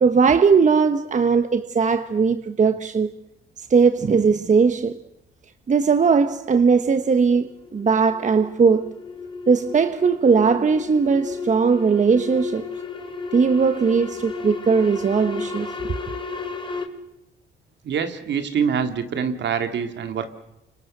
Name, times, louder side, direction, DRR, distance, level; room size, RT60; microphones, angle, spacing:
voice 1, 0.0-3.1 3.7-5.0 5.7-8.9 9.5-12.7 13.3-15.9, right 5 dB, 40° right, 1.3 m, -19 dB
sound 1, 6.3-16.8, left 4 dB, 25° left, 4.1 m, -34 dB
voice 2, 17.8-20.4, right 7 dB, 65° right, 3.0 m, -25 dB
29.5 x 25.5 x 6.7 m
cardioid pair, 90°, 20 cm